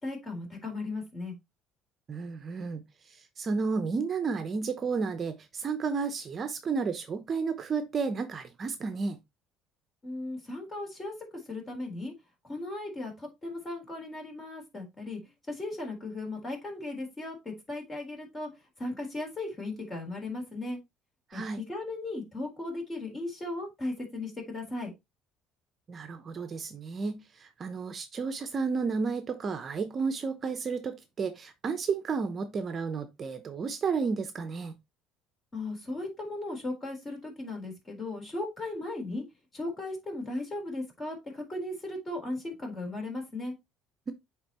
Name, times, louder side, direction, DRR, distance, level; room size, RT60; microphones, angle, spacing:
voice 1, 0.0-1.3 10.0-11.1 11.5-12.1 12.4-15.2 15.5-18.5 18.8-20.8 21.3-24.9 35.5-39.2 39.5-43.5, left 2 dB, 25° left, 3.7 m, -36 dB
voice 2, 2.1-9.2 21.3-21.6 25.9-34.8, right 5 dB, 35° right, 0.7 m, -32 dB
8.7 x 3.7 x 3.0 m
cardioid pair, 110°, 0 cm